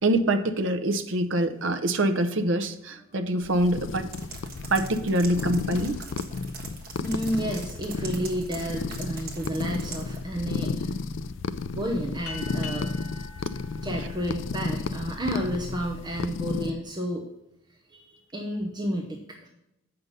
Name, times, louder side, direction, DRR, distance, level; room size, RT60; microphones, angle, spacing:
voice 1, 0.0-4.1 4.7-6.1, right 1 dB, 60° right, 8 dB, 0.7 m, -25 dB
sound 1, 3.4-16.7, left 3 dB, 55° left, 0.4 m, -33 dB
sound 2, 4.1-10.2, right 5 dB, 40° right, 1.4 m, -43 dB
voice 2, 7.0-10.9 11.7-12.9 13.8-17.3 17.9-19.5, equal, 20° right, 1 dB, 0.8 m, -31 dB
sound 3, 12.2-15.2, left 4 dB, 75° left, 1.3 m, -43 dB
7.6 x 5.7 x 5.3 m, 0.89 s
head